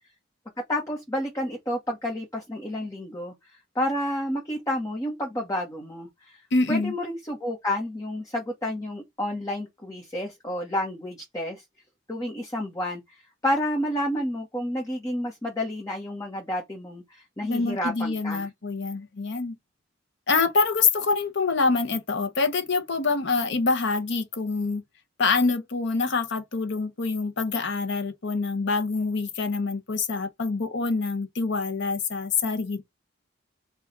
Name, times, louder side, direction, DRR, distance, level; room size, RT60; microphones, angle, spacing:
voice 1, 0.7-3.3 3.7-6.4 6.7-11.6 12.1-13.2 13.4-18.5, left 1 dB, 20° left, 1.1 m, -30 dB
voice 2, 6.5-6.9 17.4-19.6 20.3-24.8 25.2-32.8, left 4 dB, 65° left, 0.8 m, -25 dB
4.7 x 2.4 x 3.9 m
head